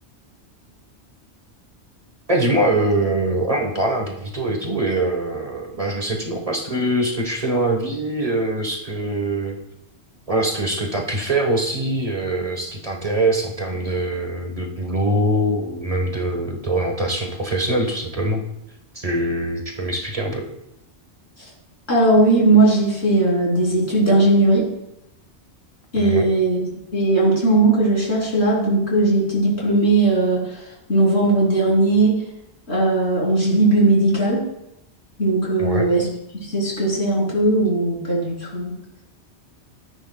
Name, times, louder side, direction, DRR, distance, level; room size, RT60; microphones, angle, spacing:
voice 1, 2.3-9.6 10.3-18.4 18.9-20.5 26.0-26.3 35.6-35.9, right 1 dB, 35° right, 2 dB, 1.3 m, -23 dB
voice 2, 21.9-24.7 25.9-26.6 26.9-30.6 30.9-32.1 32.7-34.4 35.2-36.1 36.4-38.7, right 2 dB, 70° left, -4 dB, 3.4 m, -18 dB
13.0 x 9.8 x 2.3 m, 0.82 s
omnidirectional pair, 1.1 m